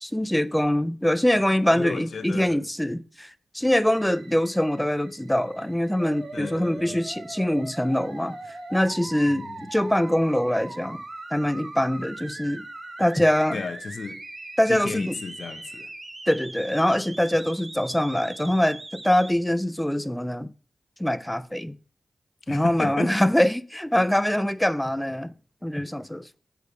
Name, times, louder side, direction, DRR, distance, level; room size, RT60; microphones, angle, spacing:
voice 1, 0.0-8.4 8.7-11.0 11.3-12.7 13.0-13.6 14.6-15.2 16.3-20.5 21.0-21.7 22.5-25.3 25.6-26.2, left 1 dB, 10° left, 0.9 m, -24 dB
voice 2, 1.7-2.6 6.3-7.0 9.3-9.6 13.5-14.2 14.7-15.9 22.5-23.1, left 5 dB, 70° left, 1.3 m, -34 dB
sound 1, 3.8-15.9, right 6 dB, 90° right, 2.4 m, -55 dB
sound 2, 6.0-19.3, right 2 dB, 35° right, 1.7 m, -40 dB
8.1 x 7.0 x 4.8 m
cardioid pair, 45°, 0 cm